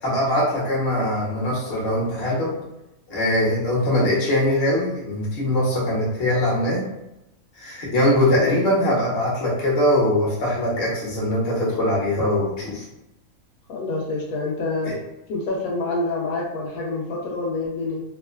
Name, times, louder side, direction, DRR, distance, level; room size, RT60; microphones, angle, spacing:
voice 1, 0.0-2.6 3.1-6.9 7.5-12.8 14.8-15.0, left 1 dB, 50° left, -6 dB, 1.0 m, -22 dB
voice 2, 13.7-14.9 15.3-18.0, left 2 dB, 80° left, -3 dB, 1.0 m, -27 dB
2.9 x 2.0 x 2.2 m, 0.91 s
omnidirectional pair, 1.5 m